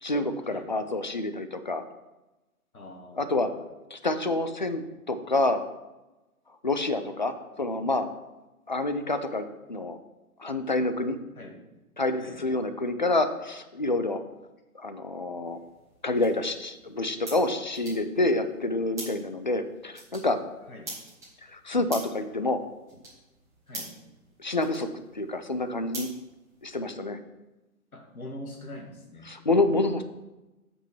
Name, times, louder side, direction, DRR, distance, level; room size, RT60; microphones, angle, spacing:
voice 1, 0.0-1.8 3.2-3.5 3.9-4.8 5.1-5.6 6.6-8.1 8.7-10.0 10.4-11.2 12.0-14.2 14.7-15.6 16.0-20.4 21.5-22.6 24.4-24.9 25.1-26.1 26.6-27.2 29.2-30.0, left 2 dB, 35° left, 10 dB, 0.5 m, -27 dB
voice 2, 2.7-3.5 11.4-11.6 12.2-12.4 20.7-20.9 23.7-23.9 27.9-29.3, left 1 dB, 70° left, 1 dB, 1.9 m, -43 dB
sound 1, 15.4-26.9, right 2 dB, 5° right, 1.8 m, -46 dB
8.2 x 5.4 x 5.6 m, 1.0 s
figure-of-eight pair, 135°, 45 cm